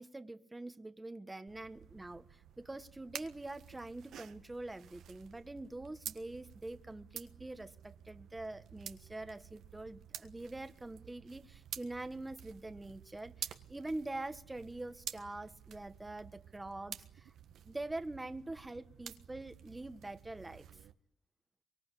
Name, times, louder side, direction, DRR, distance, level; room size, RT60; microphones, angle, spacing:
voice 1, 0.0-17.3 17.6-20.6, right 2 dB, 15° right, 10 dB, 1.5 m, -44 dB
sound 1, 1.5-20.9, right 9 dB, 70° right, 1.5 m, -51 dB
25.0 x 24.0 x 8.4 m, 0.68 s
cardioid pair, 90°, 0 cm